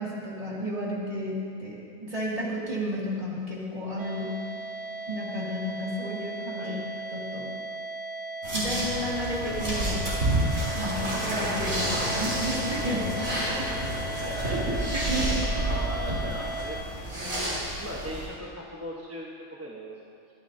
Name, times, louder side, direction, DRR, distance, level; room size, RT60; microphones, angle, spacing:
voice 1, 0.0-4.3 5.1-6.8 7.1-7.5 8.5-10.0 10.7-13.1 14.9-15.4, equal, 25° right, -6 dB, 2.5 m, -32 dB
sound 1, 4.0-16.8, right 2 dB, 70° right, 1.2 m, -37 dB
sound 2, 8.4-18.2, right 1 dB, 85° right, 4.1 m, -29 dB
voice 2, 14.2-14.7 15.7-16.8 17.1-19.3 19.6-20.0, equal, 10° right, -4 dB, 1.1 m, -39 dB
24.0 x 10.0 x 2.8 m, 2.3 s
omnidirectional pair, 1.3 m